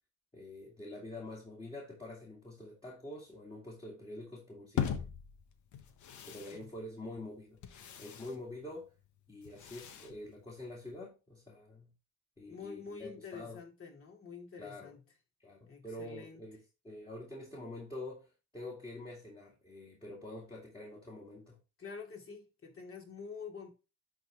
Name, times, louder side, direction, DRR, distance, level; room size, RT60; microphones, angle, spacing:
voice 1, 0.3-5.0 6.3-7.6 8.0-8.9 9.3-11.9 12.4-13.6 14.6-14.9 15.4-16.6 16.8-21.6, left 1 dB, 15° left, 2.3 m, -46 dB
sound 1, 4.8-11.0, left 8 dB, 75° left, 1.1 m, -42 dB
voice 2, 12.5-15.0 15.6-16.4 21.8-23.7, left 5 dB, 45° left, 2.6 m, -47 dB
10.5 x 3.7 x 3.5 m
cardioid pair, 90°, 30 cm